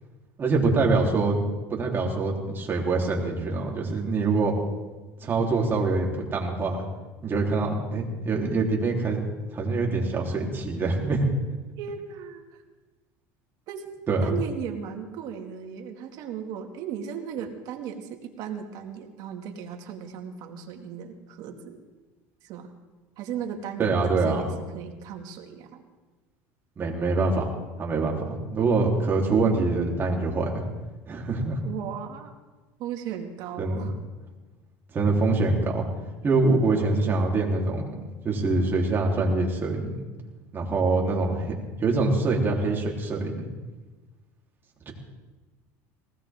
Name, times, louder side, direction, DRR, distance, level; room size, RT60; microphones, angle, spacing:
voice 1, 0.4-1.4 1.7-4.5 5.2-6.8 7.2-11.2 14.1-14.3 23.8-24.4 26.8-30.7 31.1-31.6 33.6-33.9 34.9-35.9 36.2-37.8 38.2-40.0 40.5-41.5 41.8-43.5 44.9-45.0, right 3 dB, 30° right, -1 dB, 3.8 m, -24 dB
voice 2, 11.8-12.6 13.7-21.8 22.4-22.7 23.2-25.8 31.6-32.3 32.8-33.9, right 8 dB, 60° right, 4 dB, 2.3 m, -36 dB
20.0 x 18.0 x 3.8 m, 1.2 s
supercardioid pair, 115°, 7 cm